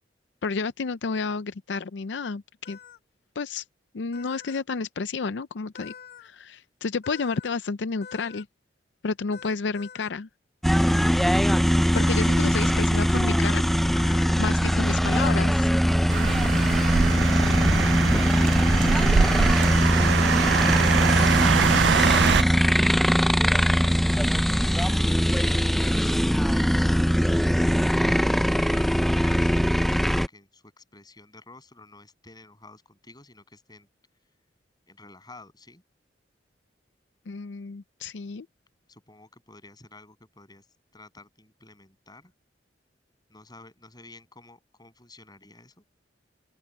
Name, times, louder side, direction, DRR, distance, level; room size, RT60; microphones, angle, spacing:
voice 1, 0.4-2.8 3.4-3.6 3.9-5.9 6.2-8.5 9.0-10.3 11.9-13.6 14.4-15.7 37.3-38.5, left 4 dB, 85° left, 0.5 m, -30 dB
sound 1, 2.6-3.0 4.1-4.6 5.7-6.3 7.0-7.5 8.0-8.4 9.3-10.1 10.8-11.1 11.9-12.4 13.9-14.4 15.1-15.6 16.6-17.0 17.5-17.7 18.0-18.3 18.8-19.3, left 7 dB, 60° left, 2.9 m, -46 dB
sound 2, 10.6-30.3, equal, ahead, 0.5 m, -21 dB
voice 2, 14.1-14.9 16.2-18.9 23.4-27.4 28.6-33.9 34.9-35.8 38.9-40.7 40.9-42.3 43.3-45.8, left 2 dB, 25° left, 8.0 m, -50 dB
sound 3, 16.1-22.4, right 6 dB, 70° right, 0.4 m, -23 dB
open air
head